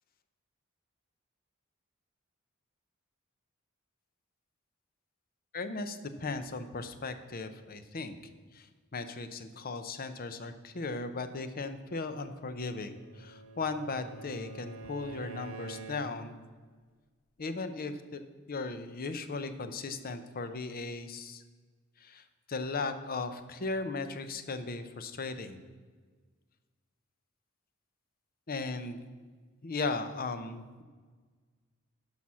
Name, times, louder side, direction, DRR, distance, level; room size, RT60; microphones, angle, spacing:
voice 1, 5.5-8.2 8.5-8.7 8.9-16.4 17.4-18.2 18.5-21.4 22.0-22.2 22.5-25.6 28.5-29.0 29.6-30.8, left 3 dB, 45° left, 10 dB, 0.7 m, -37 dB
Bowed string instrument, 12.5-16.4, right 2 dB, 75° right, 1.1 m, -46 dB
10.5 x 5.6 x 6.2 m, 1.4 s
head